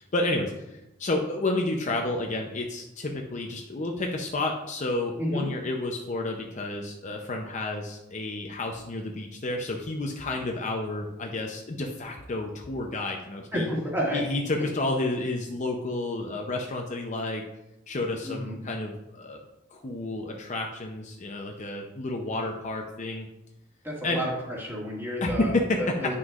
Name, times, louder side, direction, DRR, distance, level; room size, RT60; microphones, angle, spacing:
voice 1, 0.0-13.7 14.1-17.4 17.9-19.4 19.7-23.3 24.0-24.2 25.2-25.8, left 2 dB, 40° left, 2 dB, 0.6 m, -30 dB
voice 2, 13.5-14.2 18.2-18.6 23.8-25.5 25.8-26.2, equal, 10° right, -4 dB, 2.0 m, -30 dB
9.2 x 6.2 x 2.4 m, 0.91 s
head